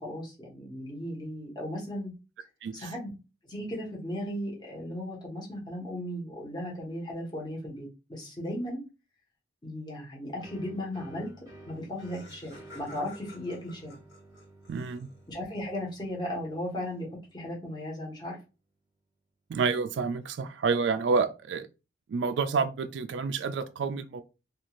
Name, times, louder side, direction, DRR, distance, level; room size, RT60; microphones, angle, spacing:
voice 1, 0.0-2.1 2.7-3.1 3.4-8.8 9.6-11.3 11.7-14.0 15.3-18.4, left 1 dB, 25° left, 1.1 m, -36 dB
sound 1, 10.4-17.9, right 1 dB, 20° right, 0.8 m, -53 dB
Laughter, 11.4-11.5 11.7-15.4, left 2 dB, 80° left, 1.3 m, -53 dB
voice 2, 14.7-15.1 19.5-21.7 22.1-24.2, right 5 dB, 85° right, 0.3 m, -29 dB
2.5 x 2.4 x 3.0 m
head